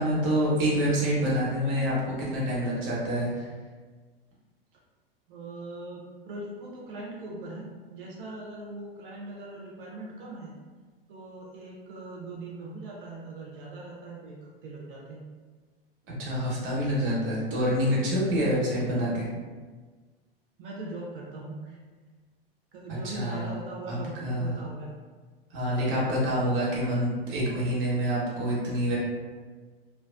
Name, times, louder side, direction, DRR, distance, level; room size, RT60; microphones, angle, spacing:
voice 1, 0.0-3.5 16.0-19.3 23.0-23.5 23.9-24.5 25.5-29.0, equal, 40° right, -6 dB, 1.1 m, -27 dB
voice 2, 5.3-10.5 11.1-15.3 20.6-21.8 22.7-24.9, right 2 dB, 60° right, -3 dB, 0.6 m, -40 dB
2.5 x 2.2 x 2.4 m, 1.4 s
hypercardioid pair, 90°, 30 cm